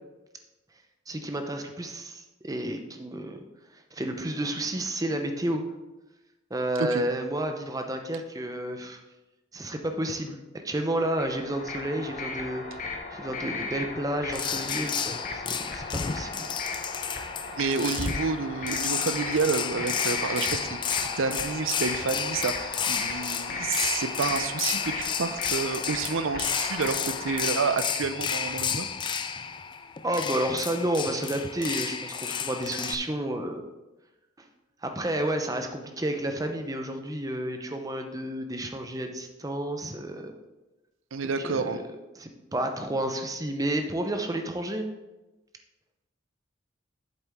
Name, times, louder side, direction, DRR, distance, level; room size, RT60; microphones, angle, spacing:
voice 1, 1.1-3.4 3.9-5.6 6.5-9.0 9.5-10.4 10.6-12.7 13.1-16.5 30.0-33.6 34.8-40.3 41.4-41.8 42.2-44.9, right 1 dB, 20° right, 5 dB, 0.7 m, -31 dB
sound 1, 11.0-28.1, left 3 dB, 40° left, 1.0 m, -37 dB
sound 2, 14.3-32.9, left 7 dB, 25° left, 0.3 m, -32 dB
voice 2, 17.6-28.9 41.1-41.8, right 5 dB, 80° right, 11 dB, 0.6 m, -29 dB
8.3 x 7.1 x 3.6 m, 1.1 s
head